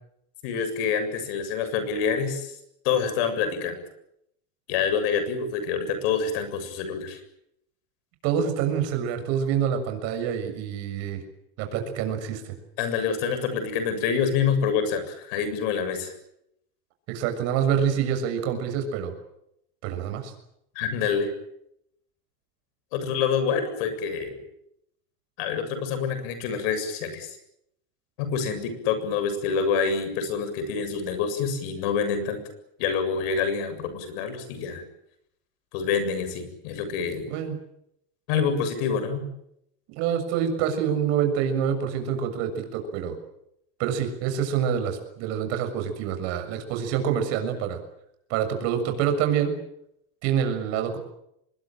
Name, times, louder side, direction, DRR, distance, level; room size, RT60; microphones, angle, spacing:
voice 1, 0.4-2.6 2.8-3.8 4.7-7.2 12.8-16.1 20.8-21.3 22.9-24.4 25.4-27.4 28.2-32.4 32.8-34.8 35.7-37.3 38.3-39.3, left 6 dB, 65° left, 10 dB, 7.5 m, -27 dB
voice 2, 8.2-11.2 11.6-12.5 17.1-19.1 19.8-20.3 37.3-37.6 39.9-43.1 43.8-47.8 48.3-49.5 50.2-51.0, right 8 dB, 55° right, 7 dB, 6.9 m, -26 dB
25.0 x 22.0 x 9.1 m, 0.78 s
supercardioid pair, 160°, 31 cm